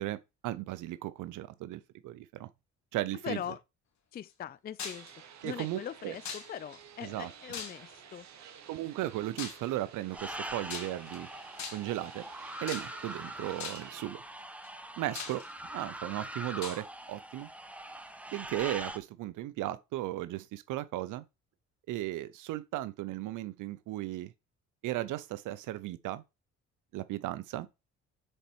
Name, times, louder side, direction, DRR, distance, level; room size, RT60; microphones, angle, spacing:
voice 1, 0.0-2.5 2.9-3.4 5.4-6.2 7.0-7.3 8.7-11.3 11.7-12.3 12.6-14.2 15.0-15.4 15.7-17.5 18.3-21.2 21.9-24.3 24.8-26.2 26.9-27.7, right 15 dB, 85° right, 0.6 m, -36 dB
voice 2, 3.2-3.6 4.1-5.1 5.4-8.3, left 9 dB, 30° left, 0.4 m, -41 dB
sound 1, 4.8-5.1 6.3-6.8 7.5-8.1 9.4-9.7 10.7-11.2 11.6-12.0 12.7-13.1 13.6-14.0 14.6-14.7 15.2-15.8 16.6-16.8, left 6 dB, 65° left, 1.8 m, -40 dB
sound 2, 4.8-14.0, right 8 dB, 65° right, 1.4 m, -53 dB
sound 3, 10.1-19.0, right 1 dB, 5° right, 0.9 m, -43 dB
6.6 x 4.3 x 4.3 m
cardioid pair, 90°, 30 cm